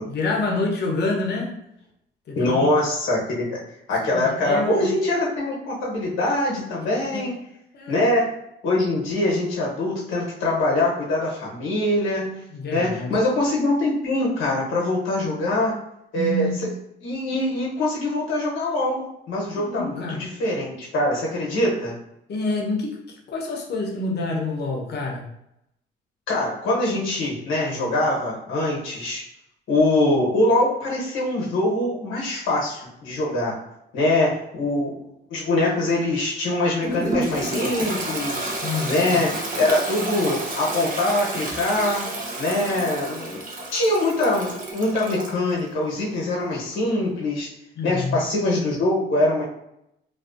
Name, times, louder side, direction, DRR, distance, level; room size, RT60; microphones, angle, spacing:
voice 1, 0.1-1.5 2.3-2.6 4.1-4.9 7.1-7.3 7.7-8.0 12.5-13.1 16.1-16.6 19.6-20.2 22.3-23.0 23.3-25.2 38.5-39.2 47.8-48.2, left 2 dB, 55° left, 0 dB, 0.7 m, -27 dB
voice 2, 2.4-3.6 3.9-7.3 7.9-8.3 8.6-12.3 12.7-15.8 16.1-16.5 17.0-21.9 26.3-29.2 29.7-33.6 33.9-34.9 35.3-38.5 38.9-42.1 42.4-43.4 43.7-47.5 47.8-49.4, left 1 dB, 85° left, -3 dB, 0.9 m, -23 dB
Toilet flush, 36.8-45.4, right 2 dB, 45° right, 0.6 m, -30 dB
2.5 x 2.3 x 2.4 m, 0.80 s
cardioid pair, 90°, 20 cm